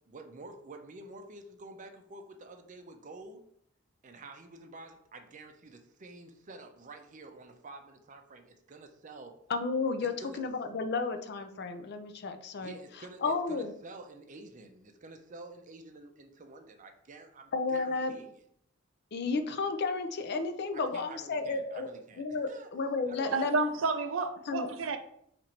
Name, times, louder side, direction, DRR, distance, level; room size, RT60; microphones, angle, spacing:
voice 1, 0.1-3.4 4.0-9.3 10.2-10.4 12.6-18.3 20.7-22.7 23.1-23.5, right 2 dB, 40° right, 6 dB, 0.5 m, -49 dB
voice 2, 9.5-12.7 13.2-13.7 17.5-18.1 19.1-21.9 22.2-23.7 24.5-24.7, left 4 dB, 55° left, 8 dB, 0.5 m, -32 dB
voice 3, 23.3-25.0, right 4 dB, 90° right, 8 dB, 0.5 m, -31 dB
4.3 x 2.5 x 4.3 m, 0.69 s
head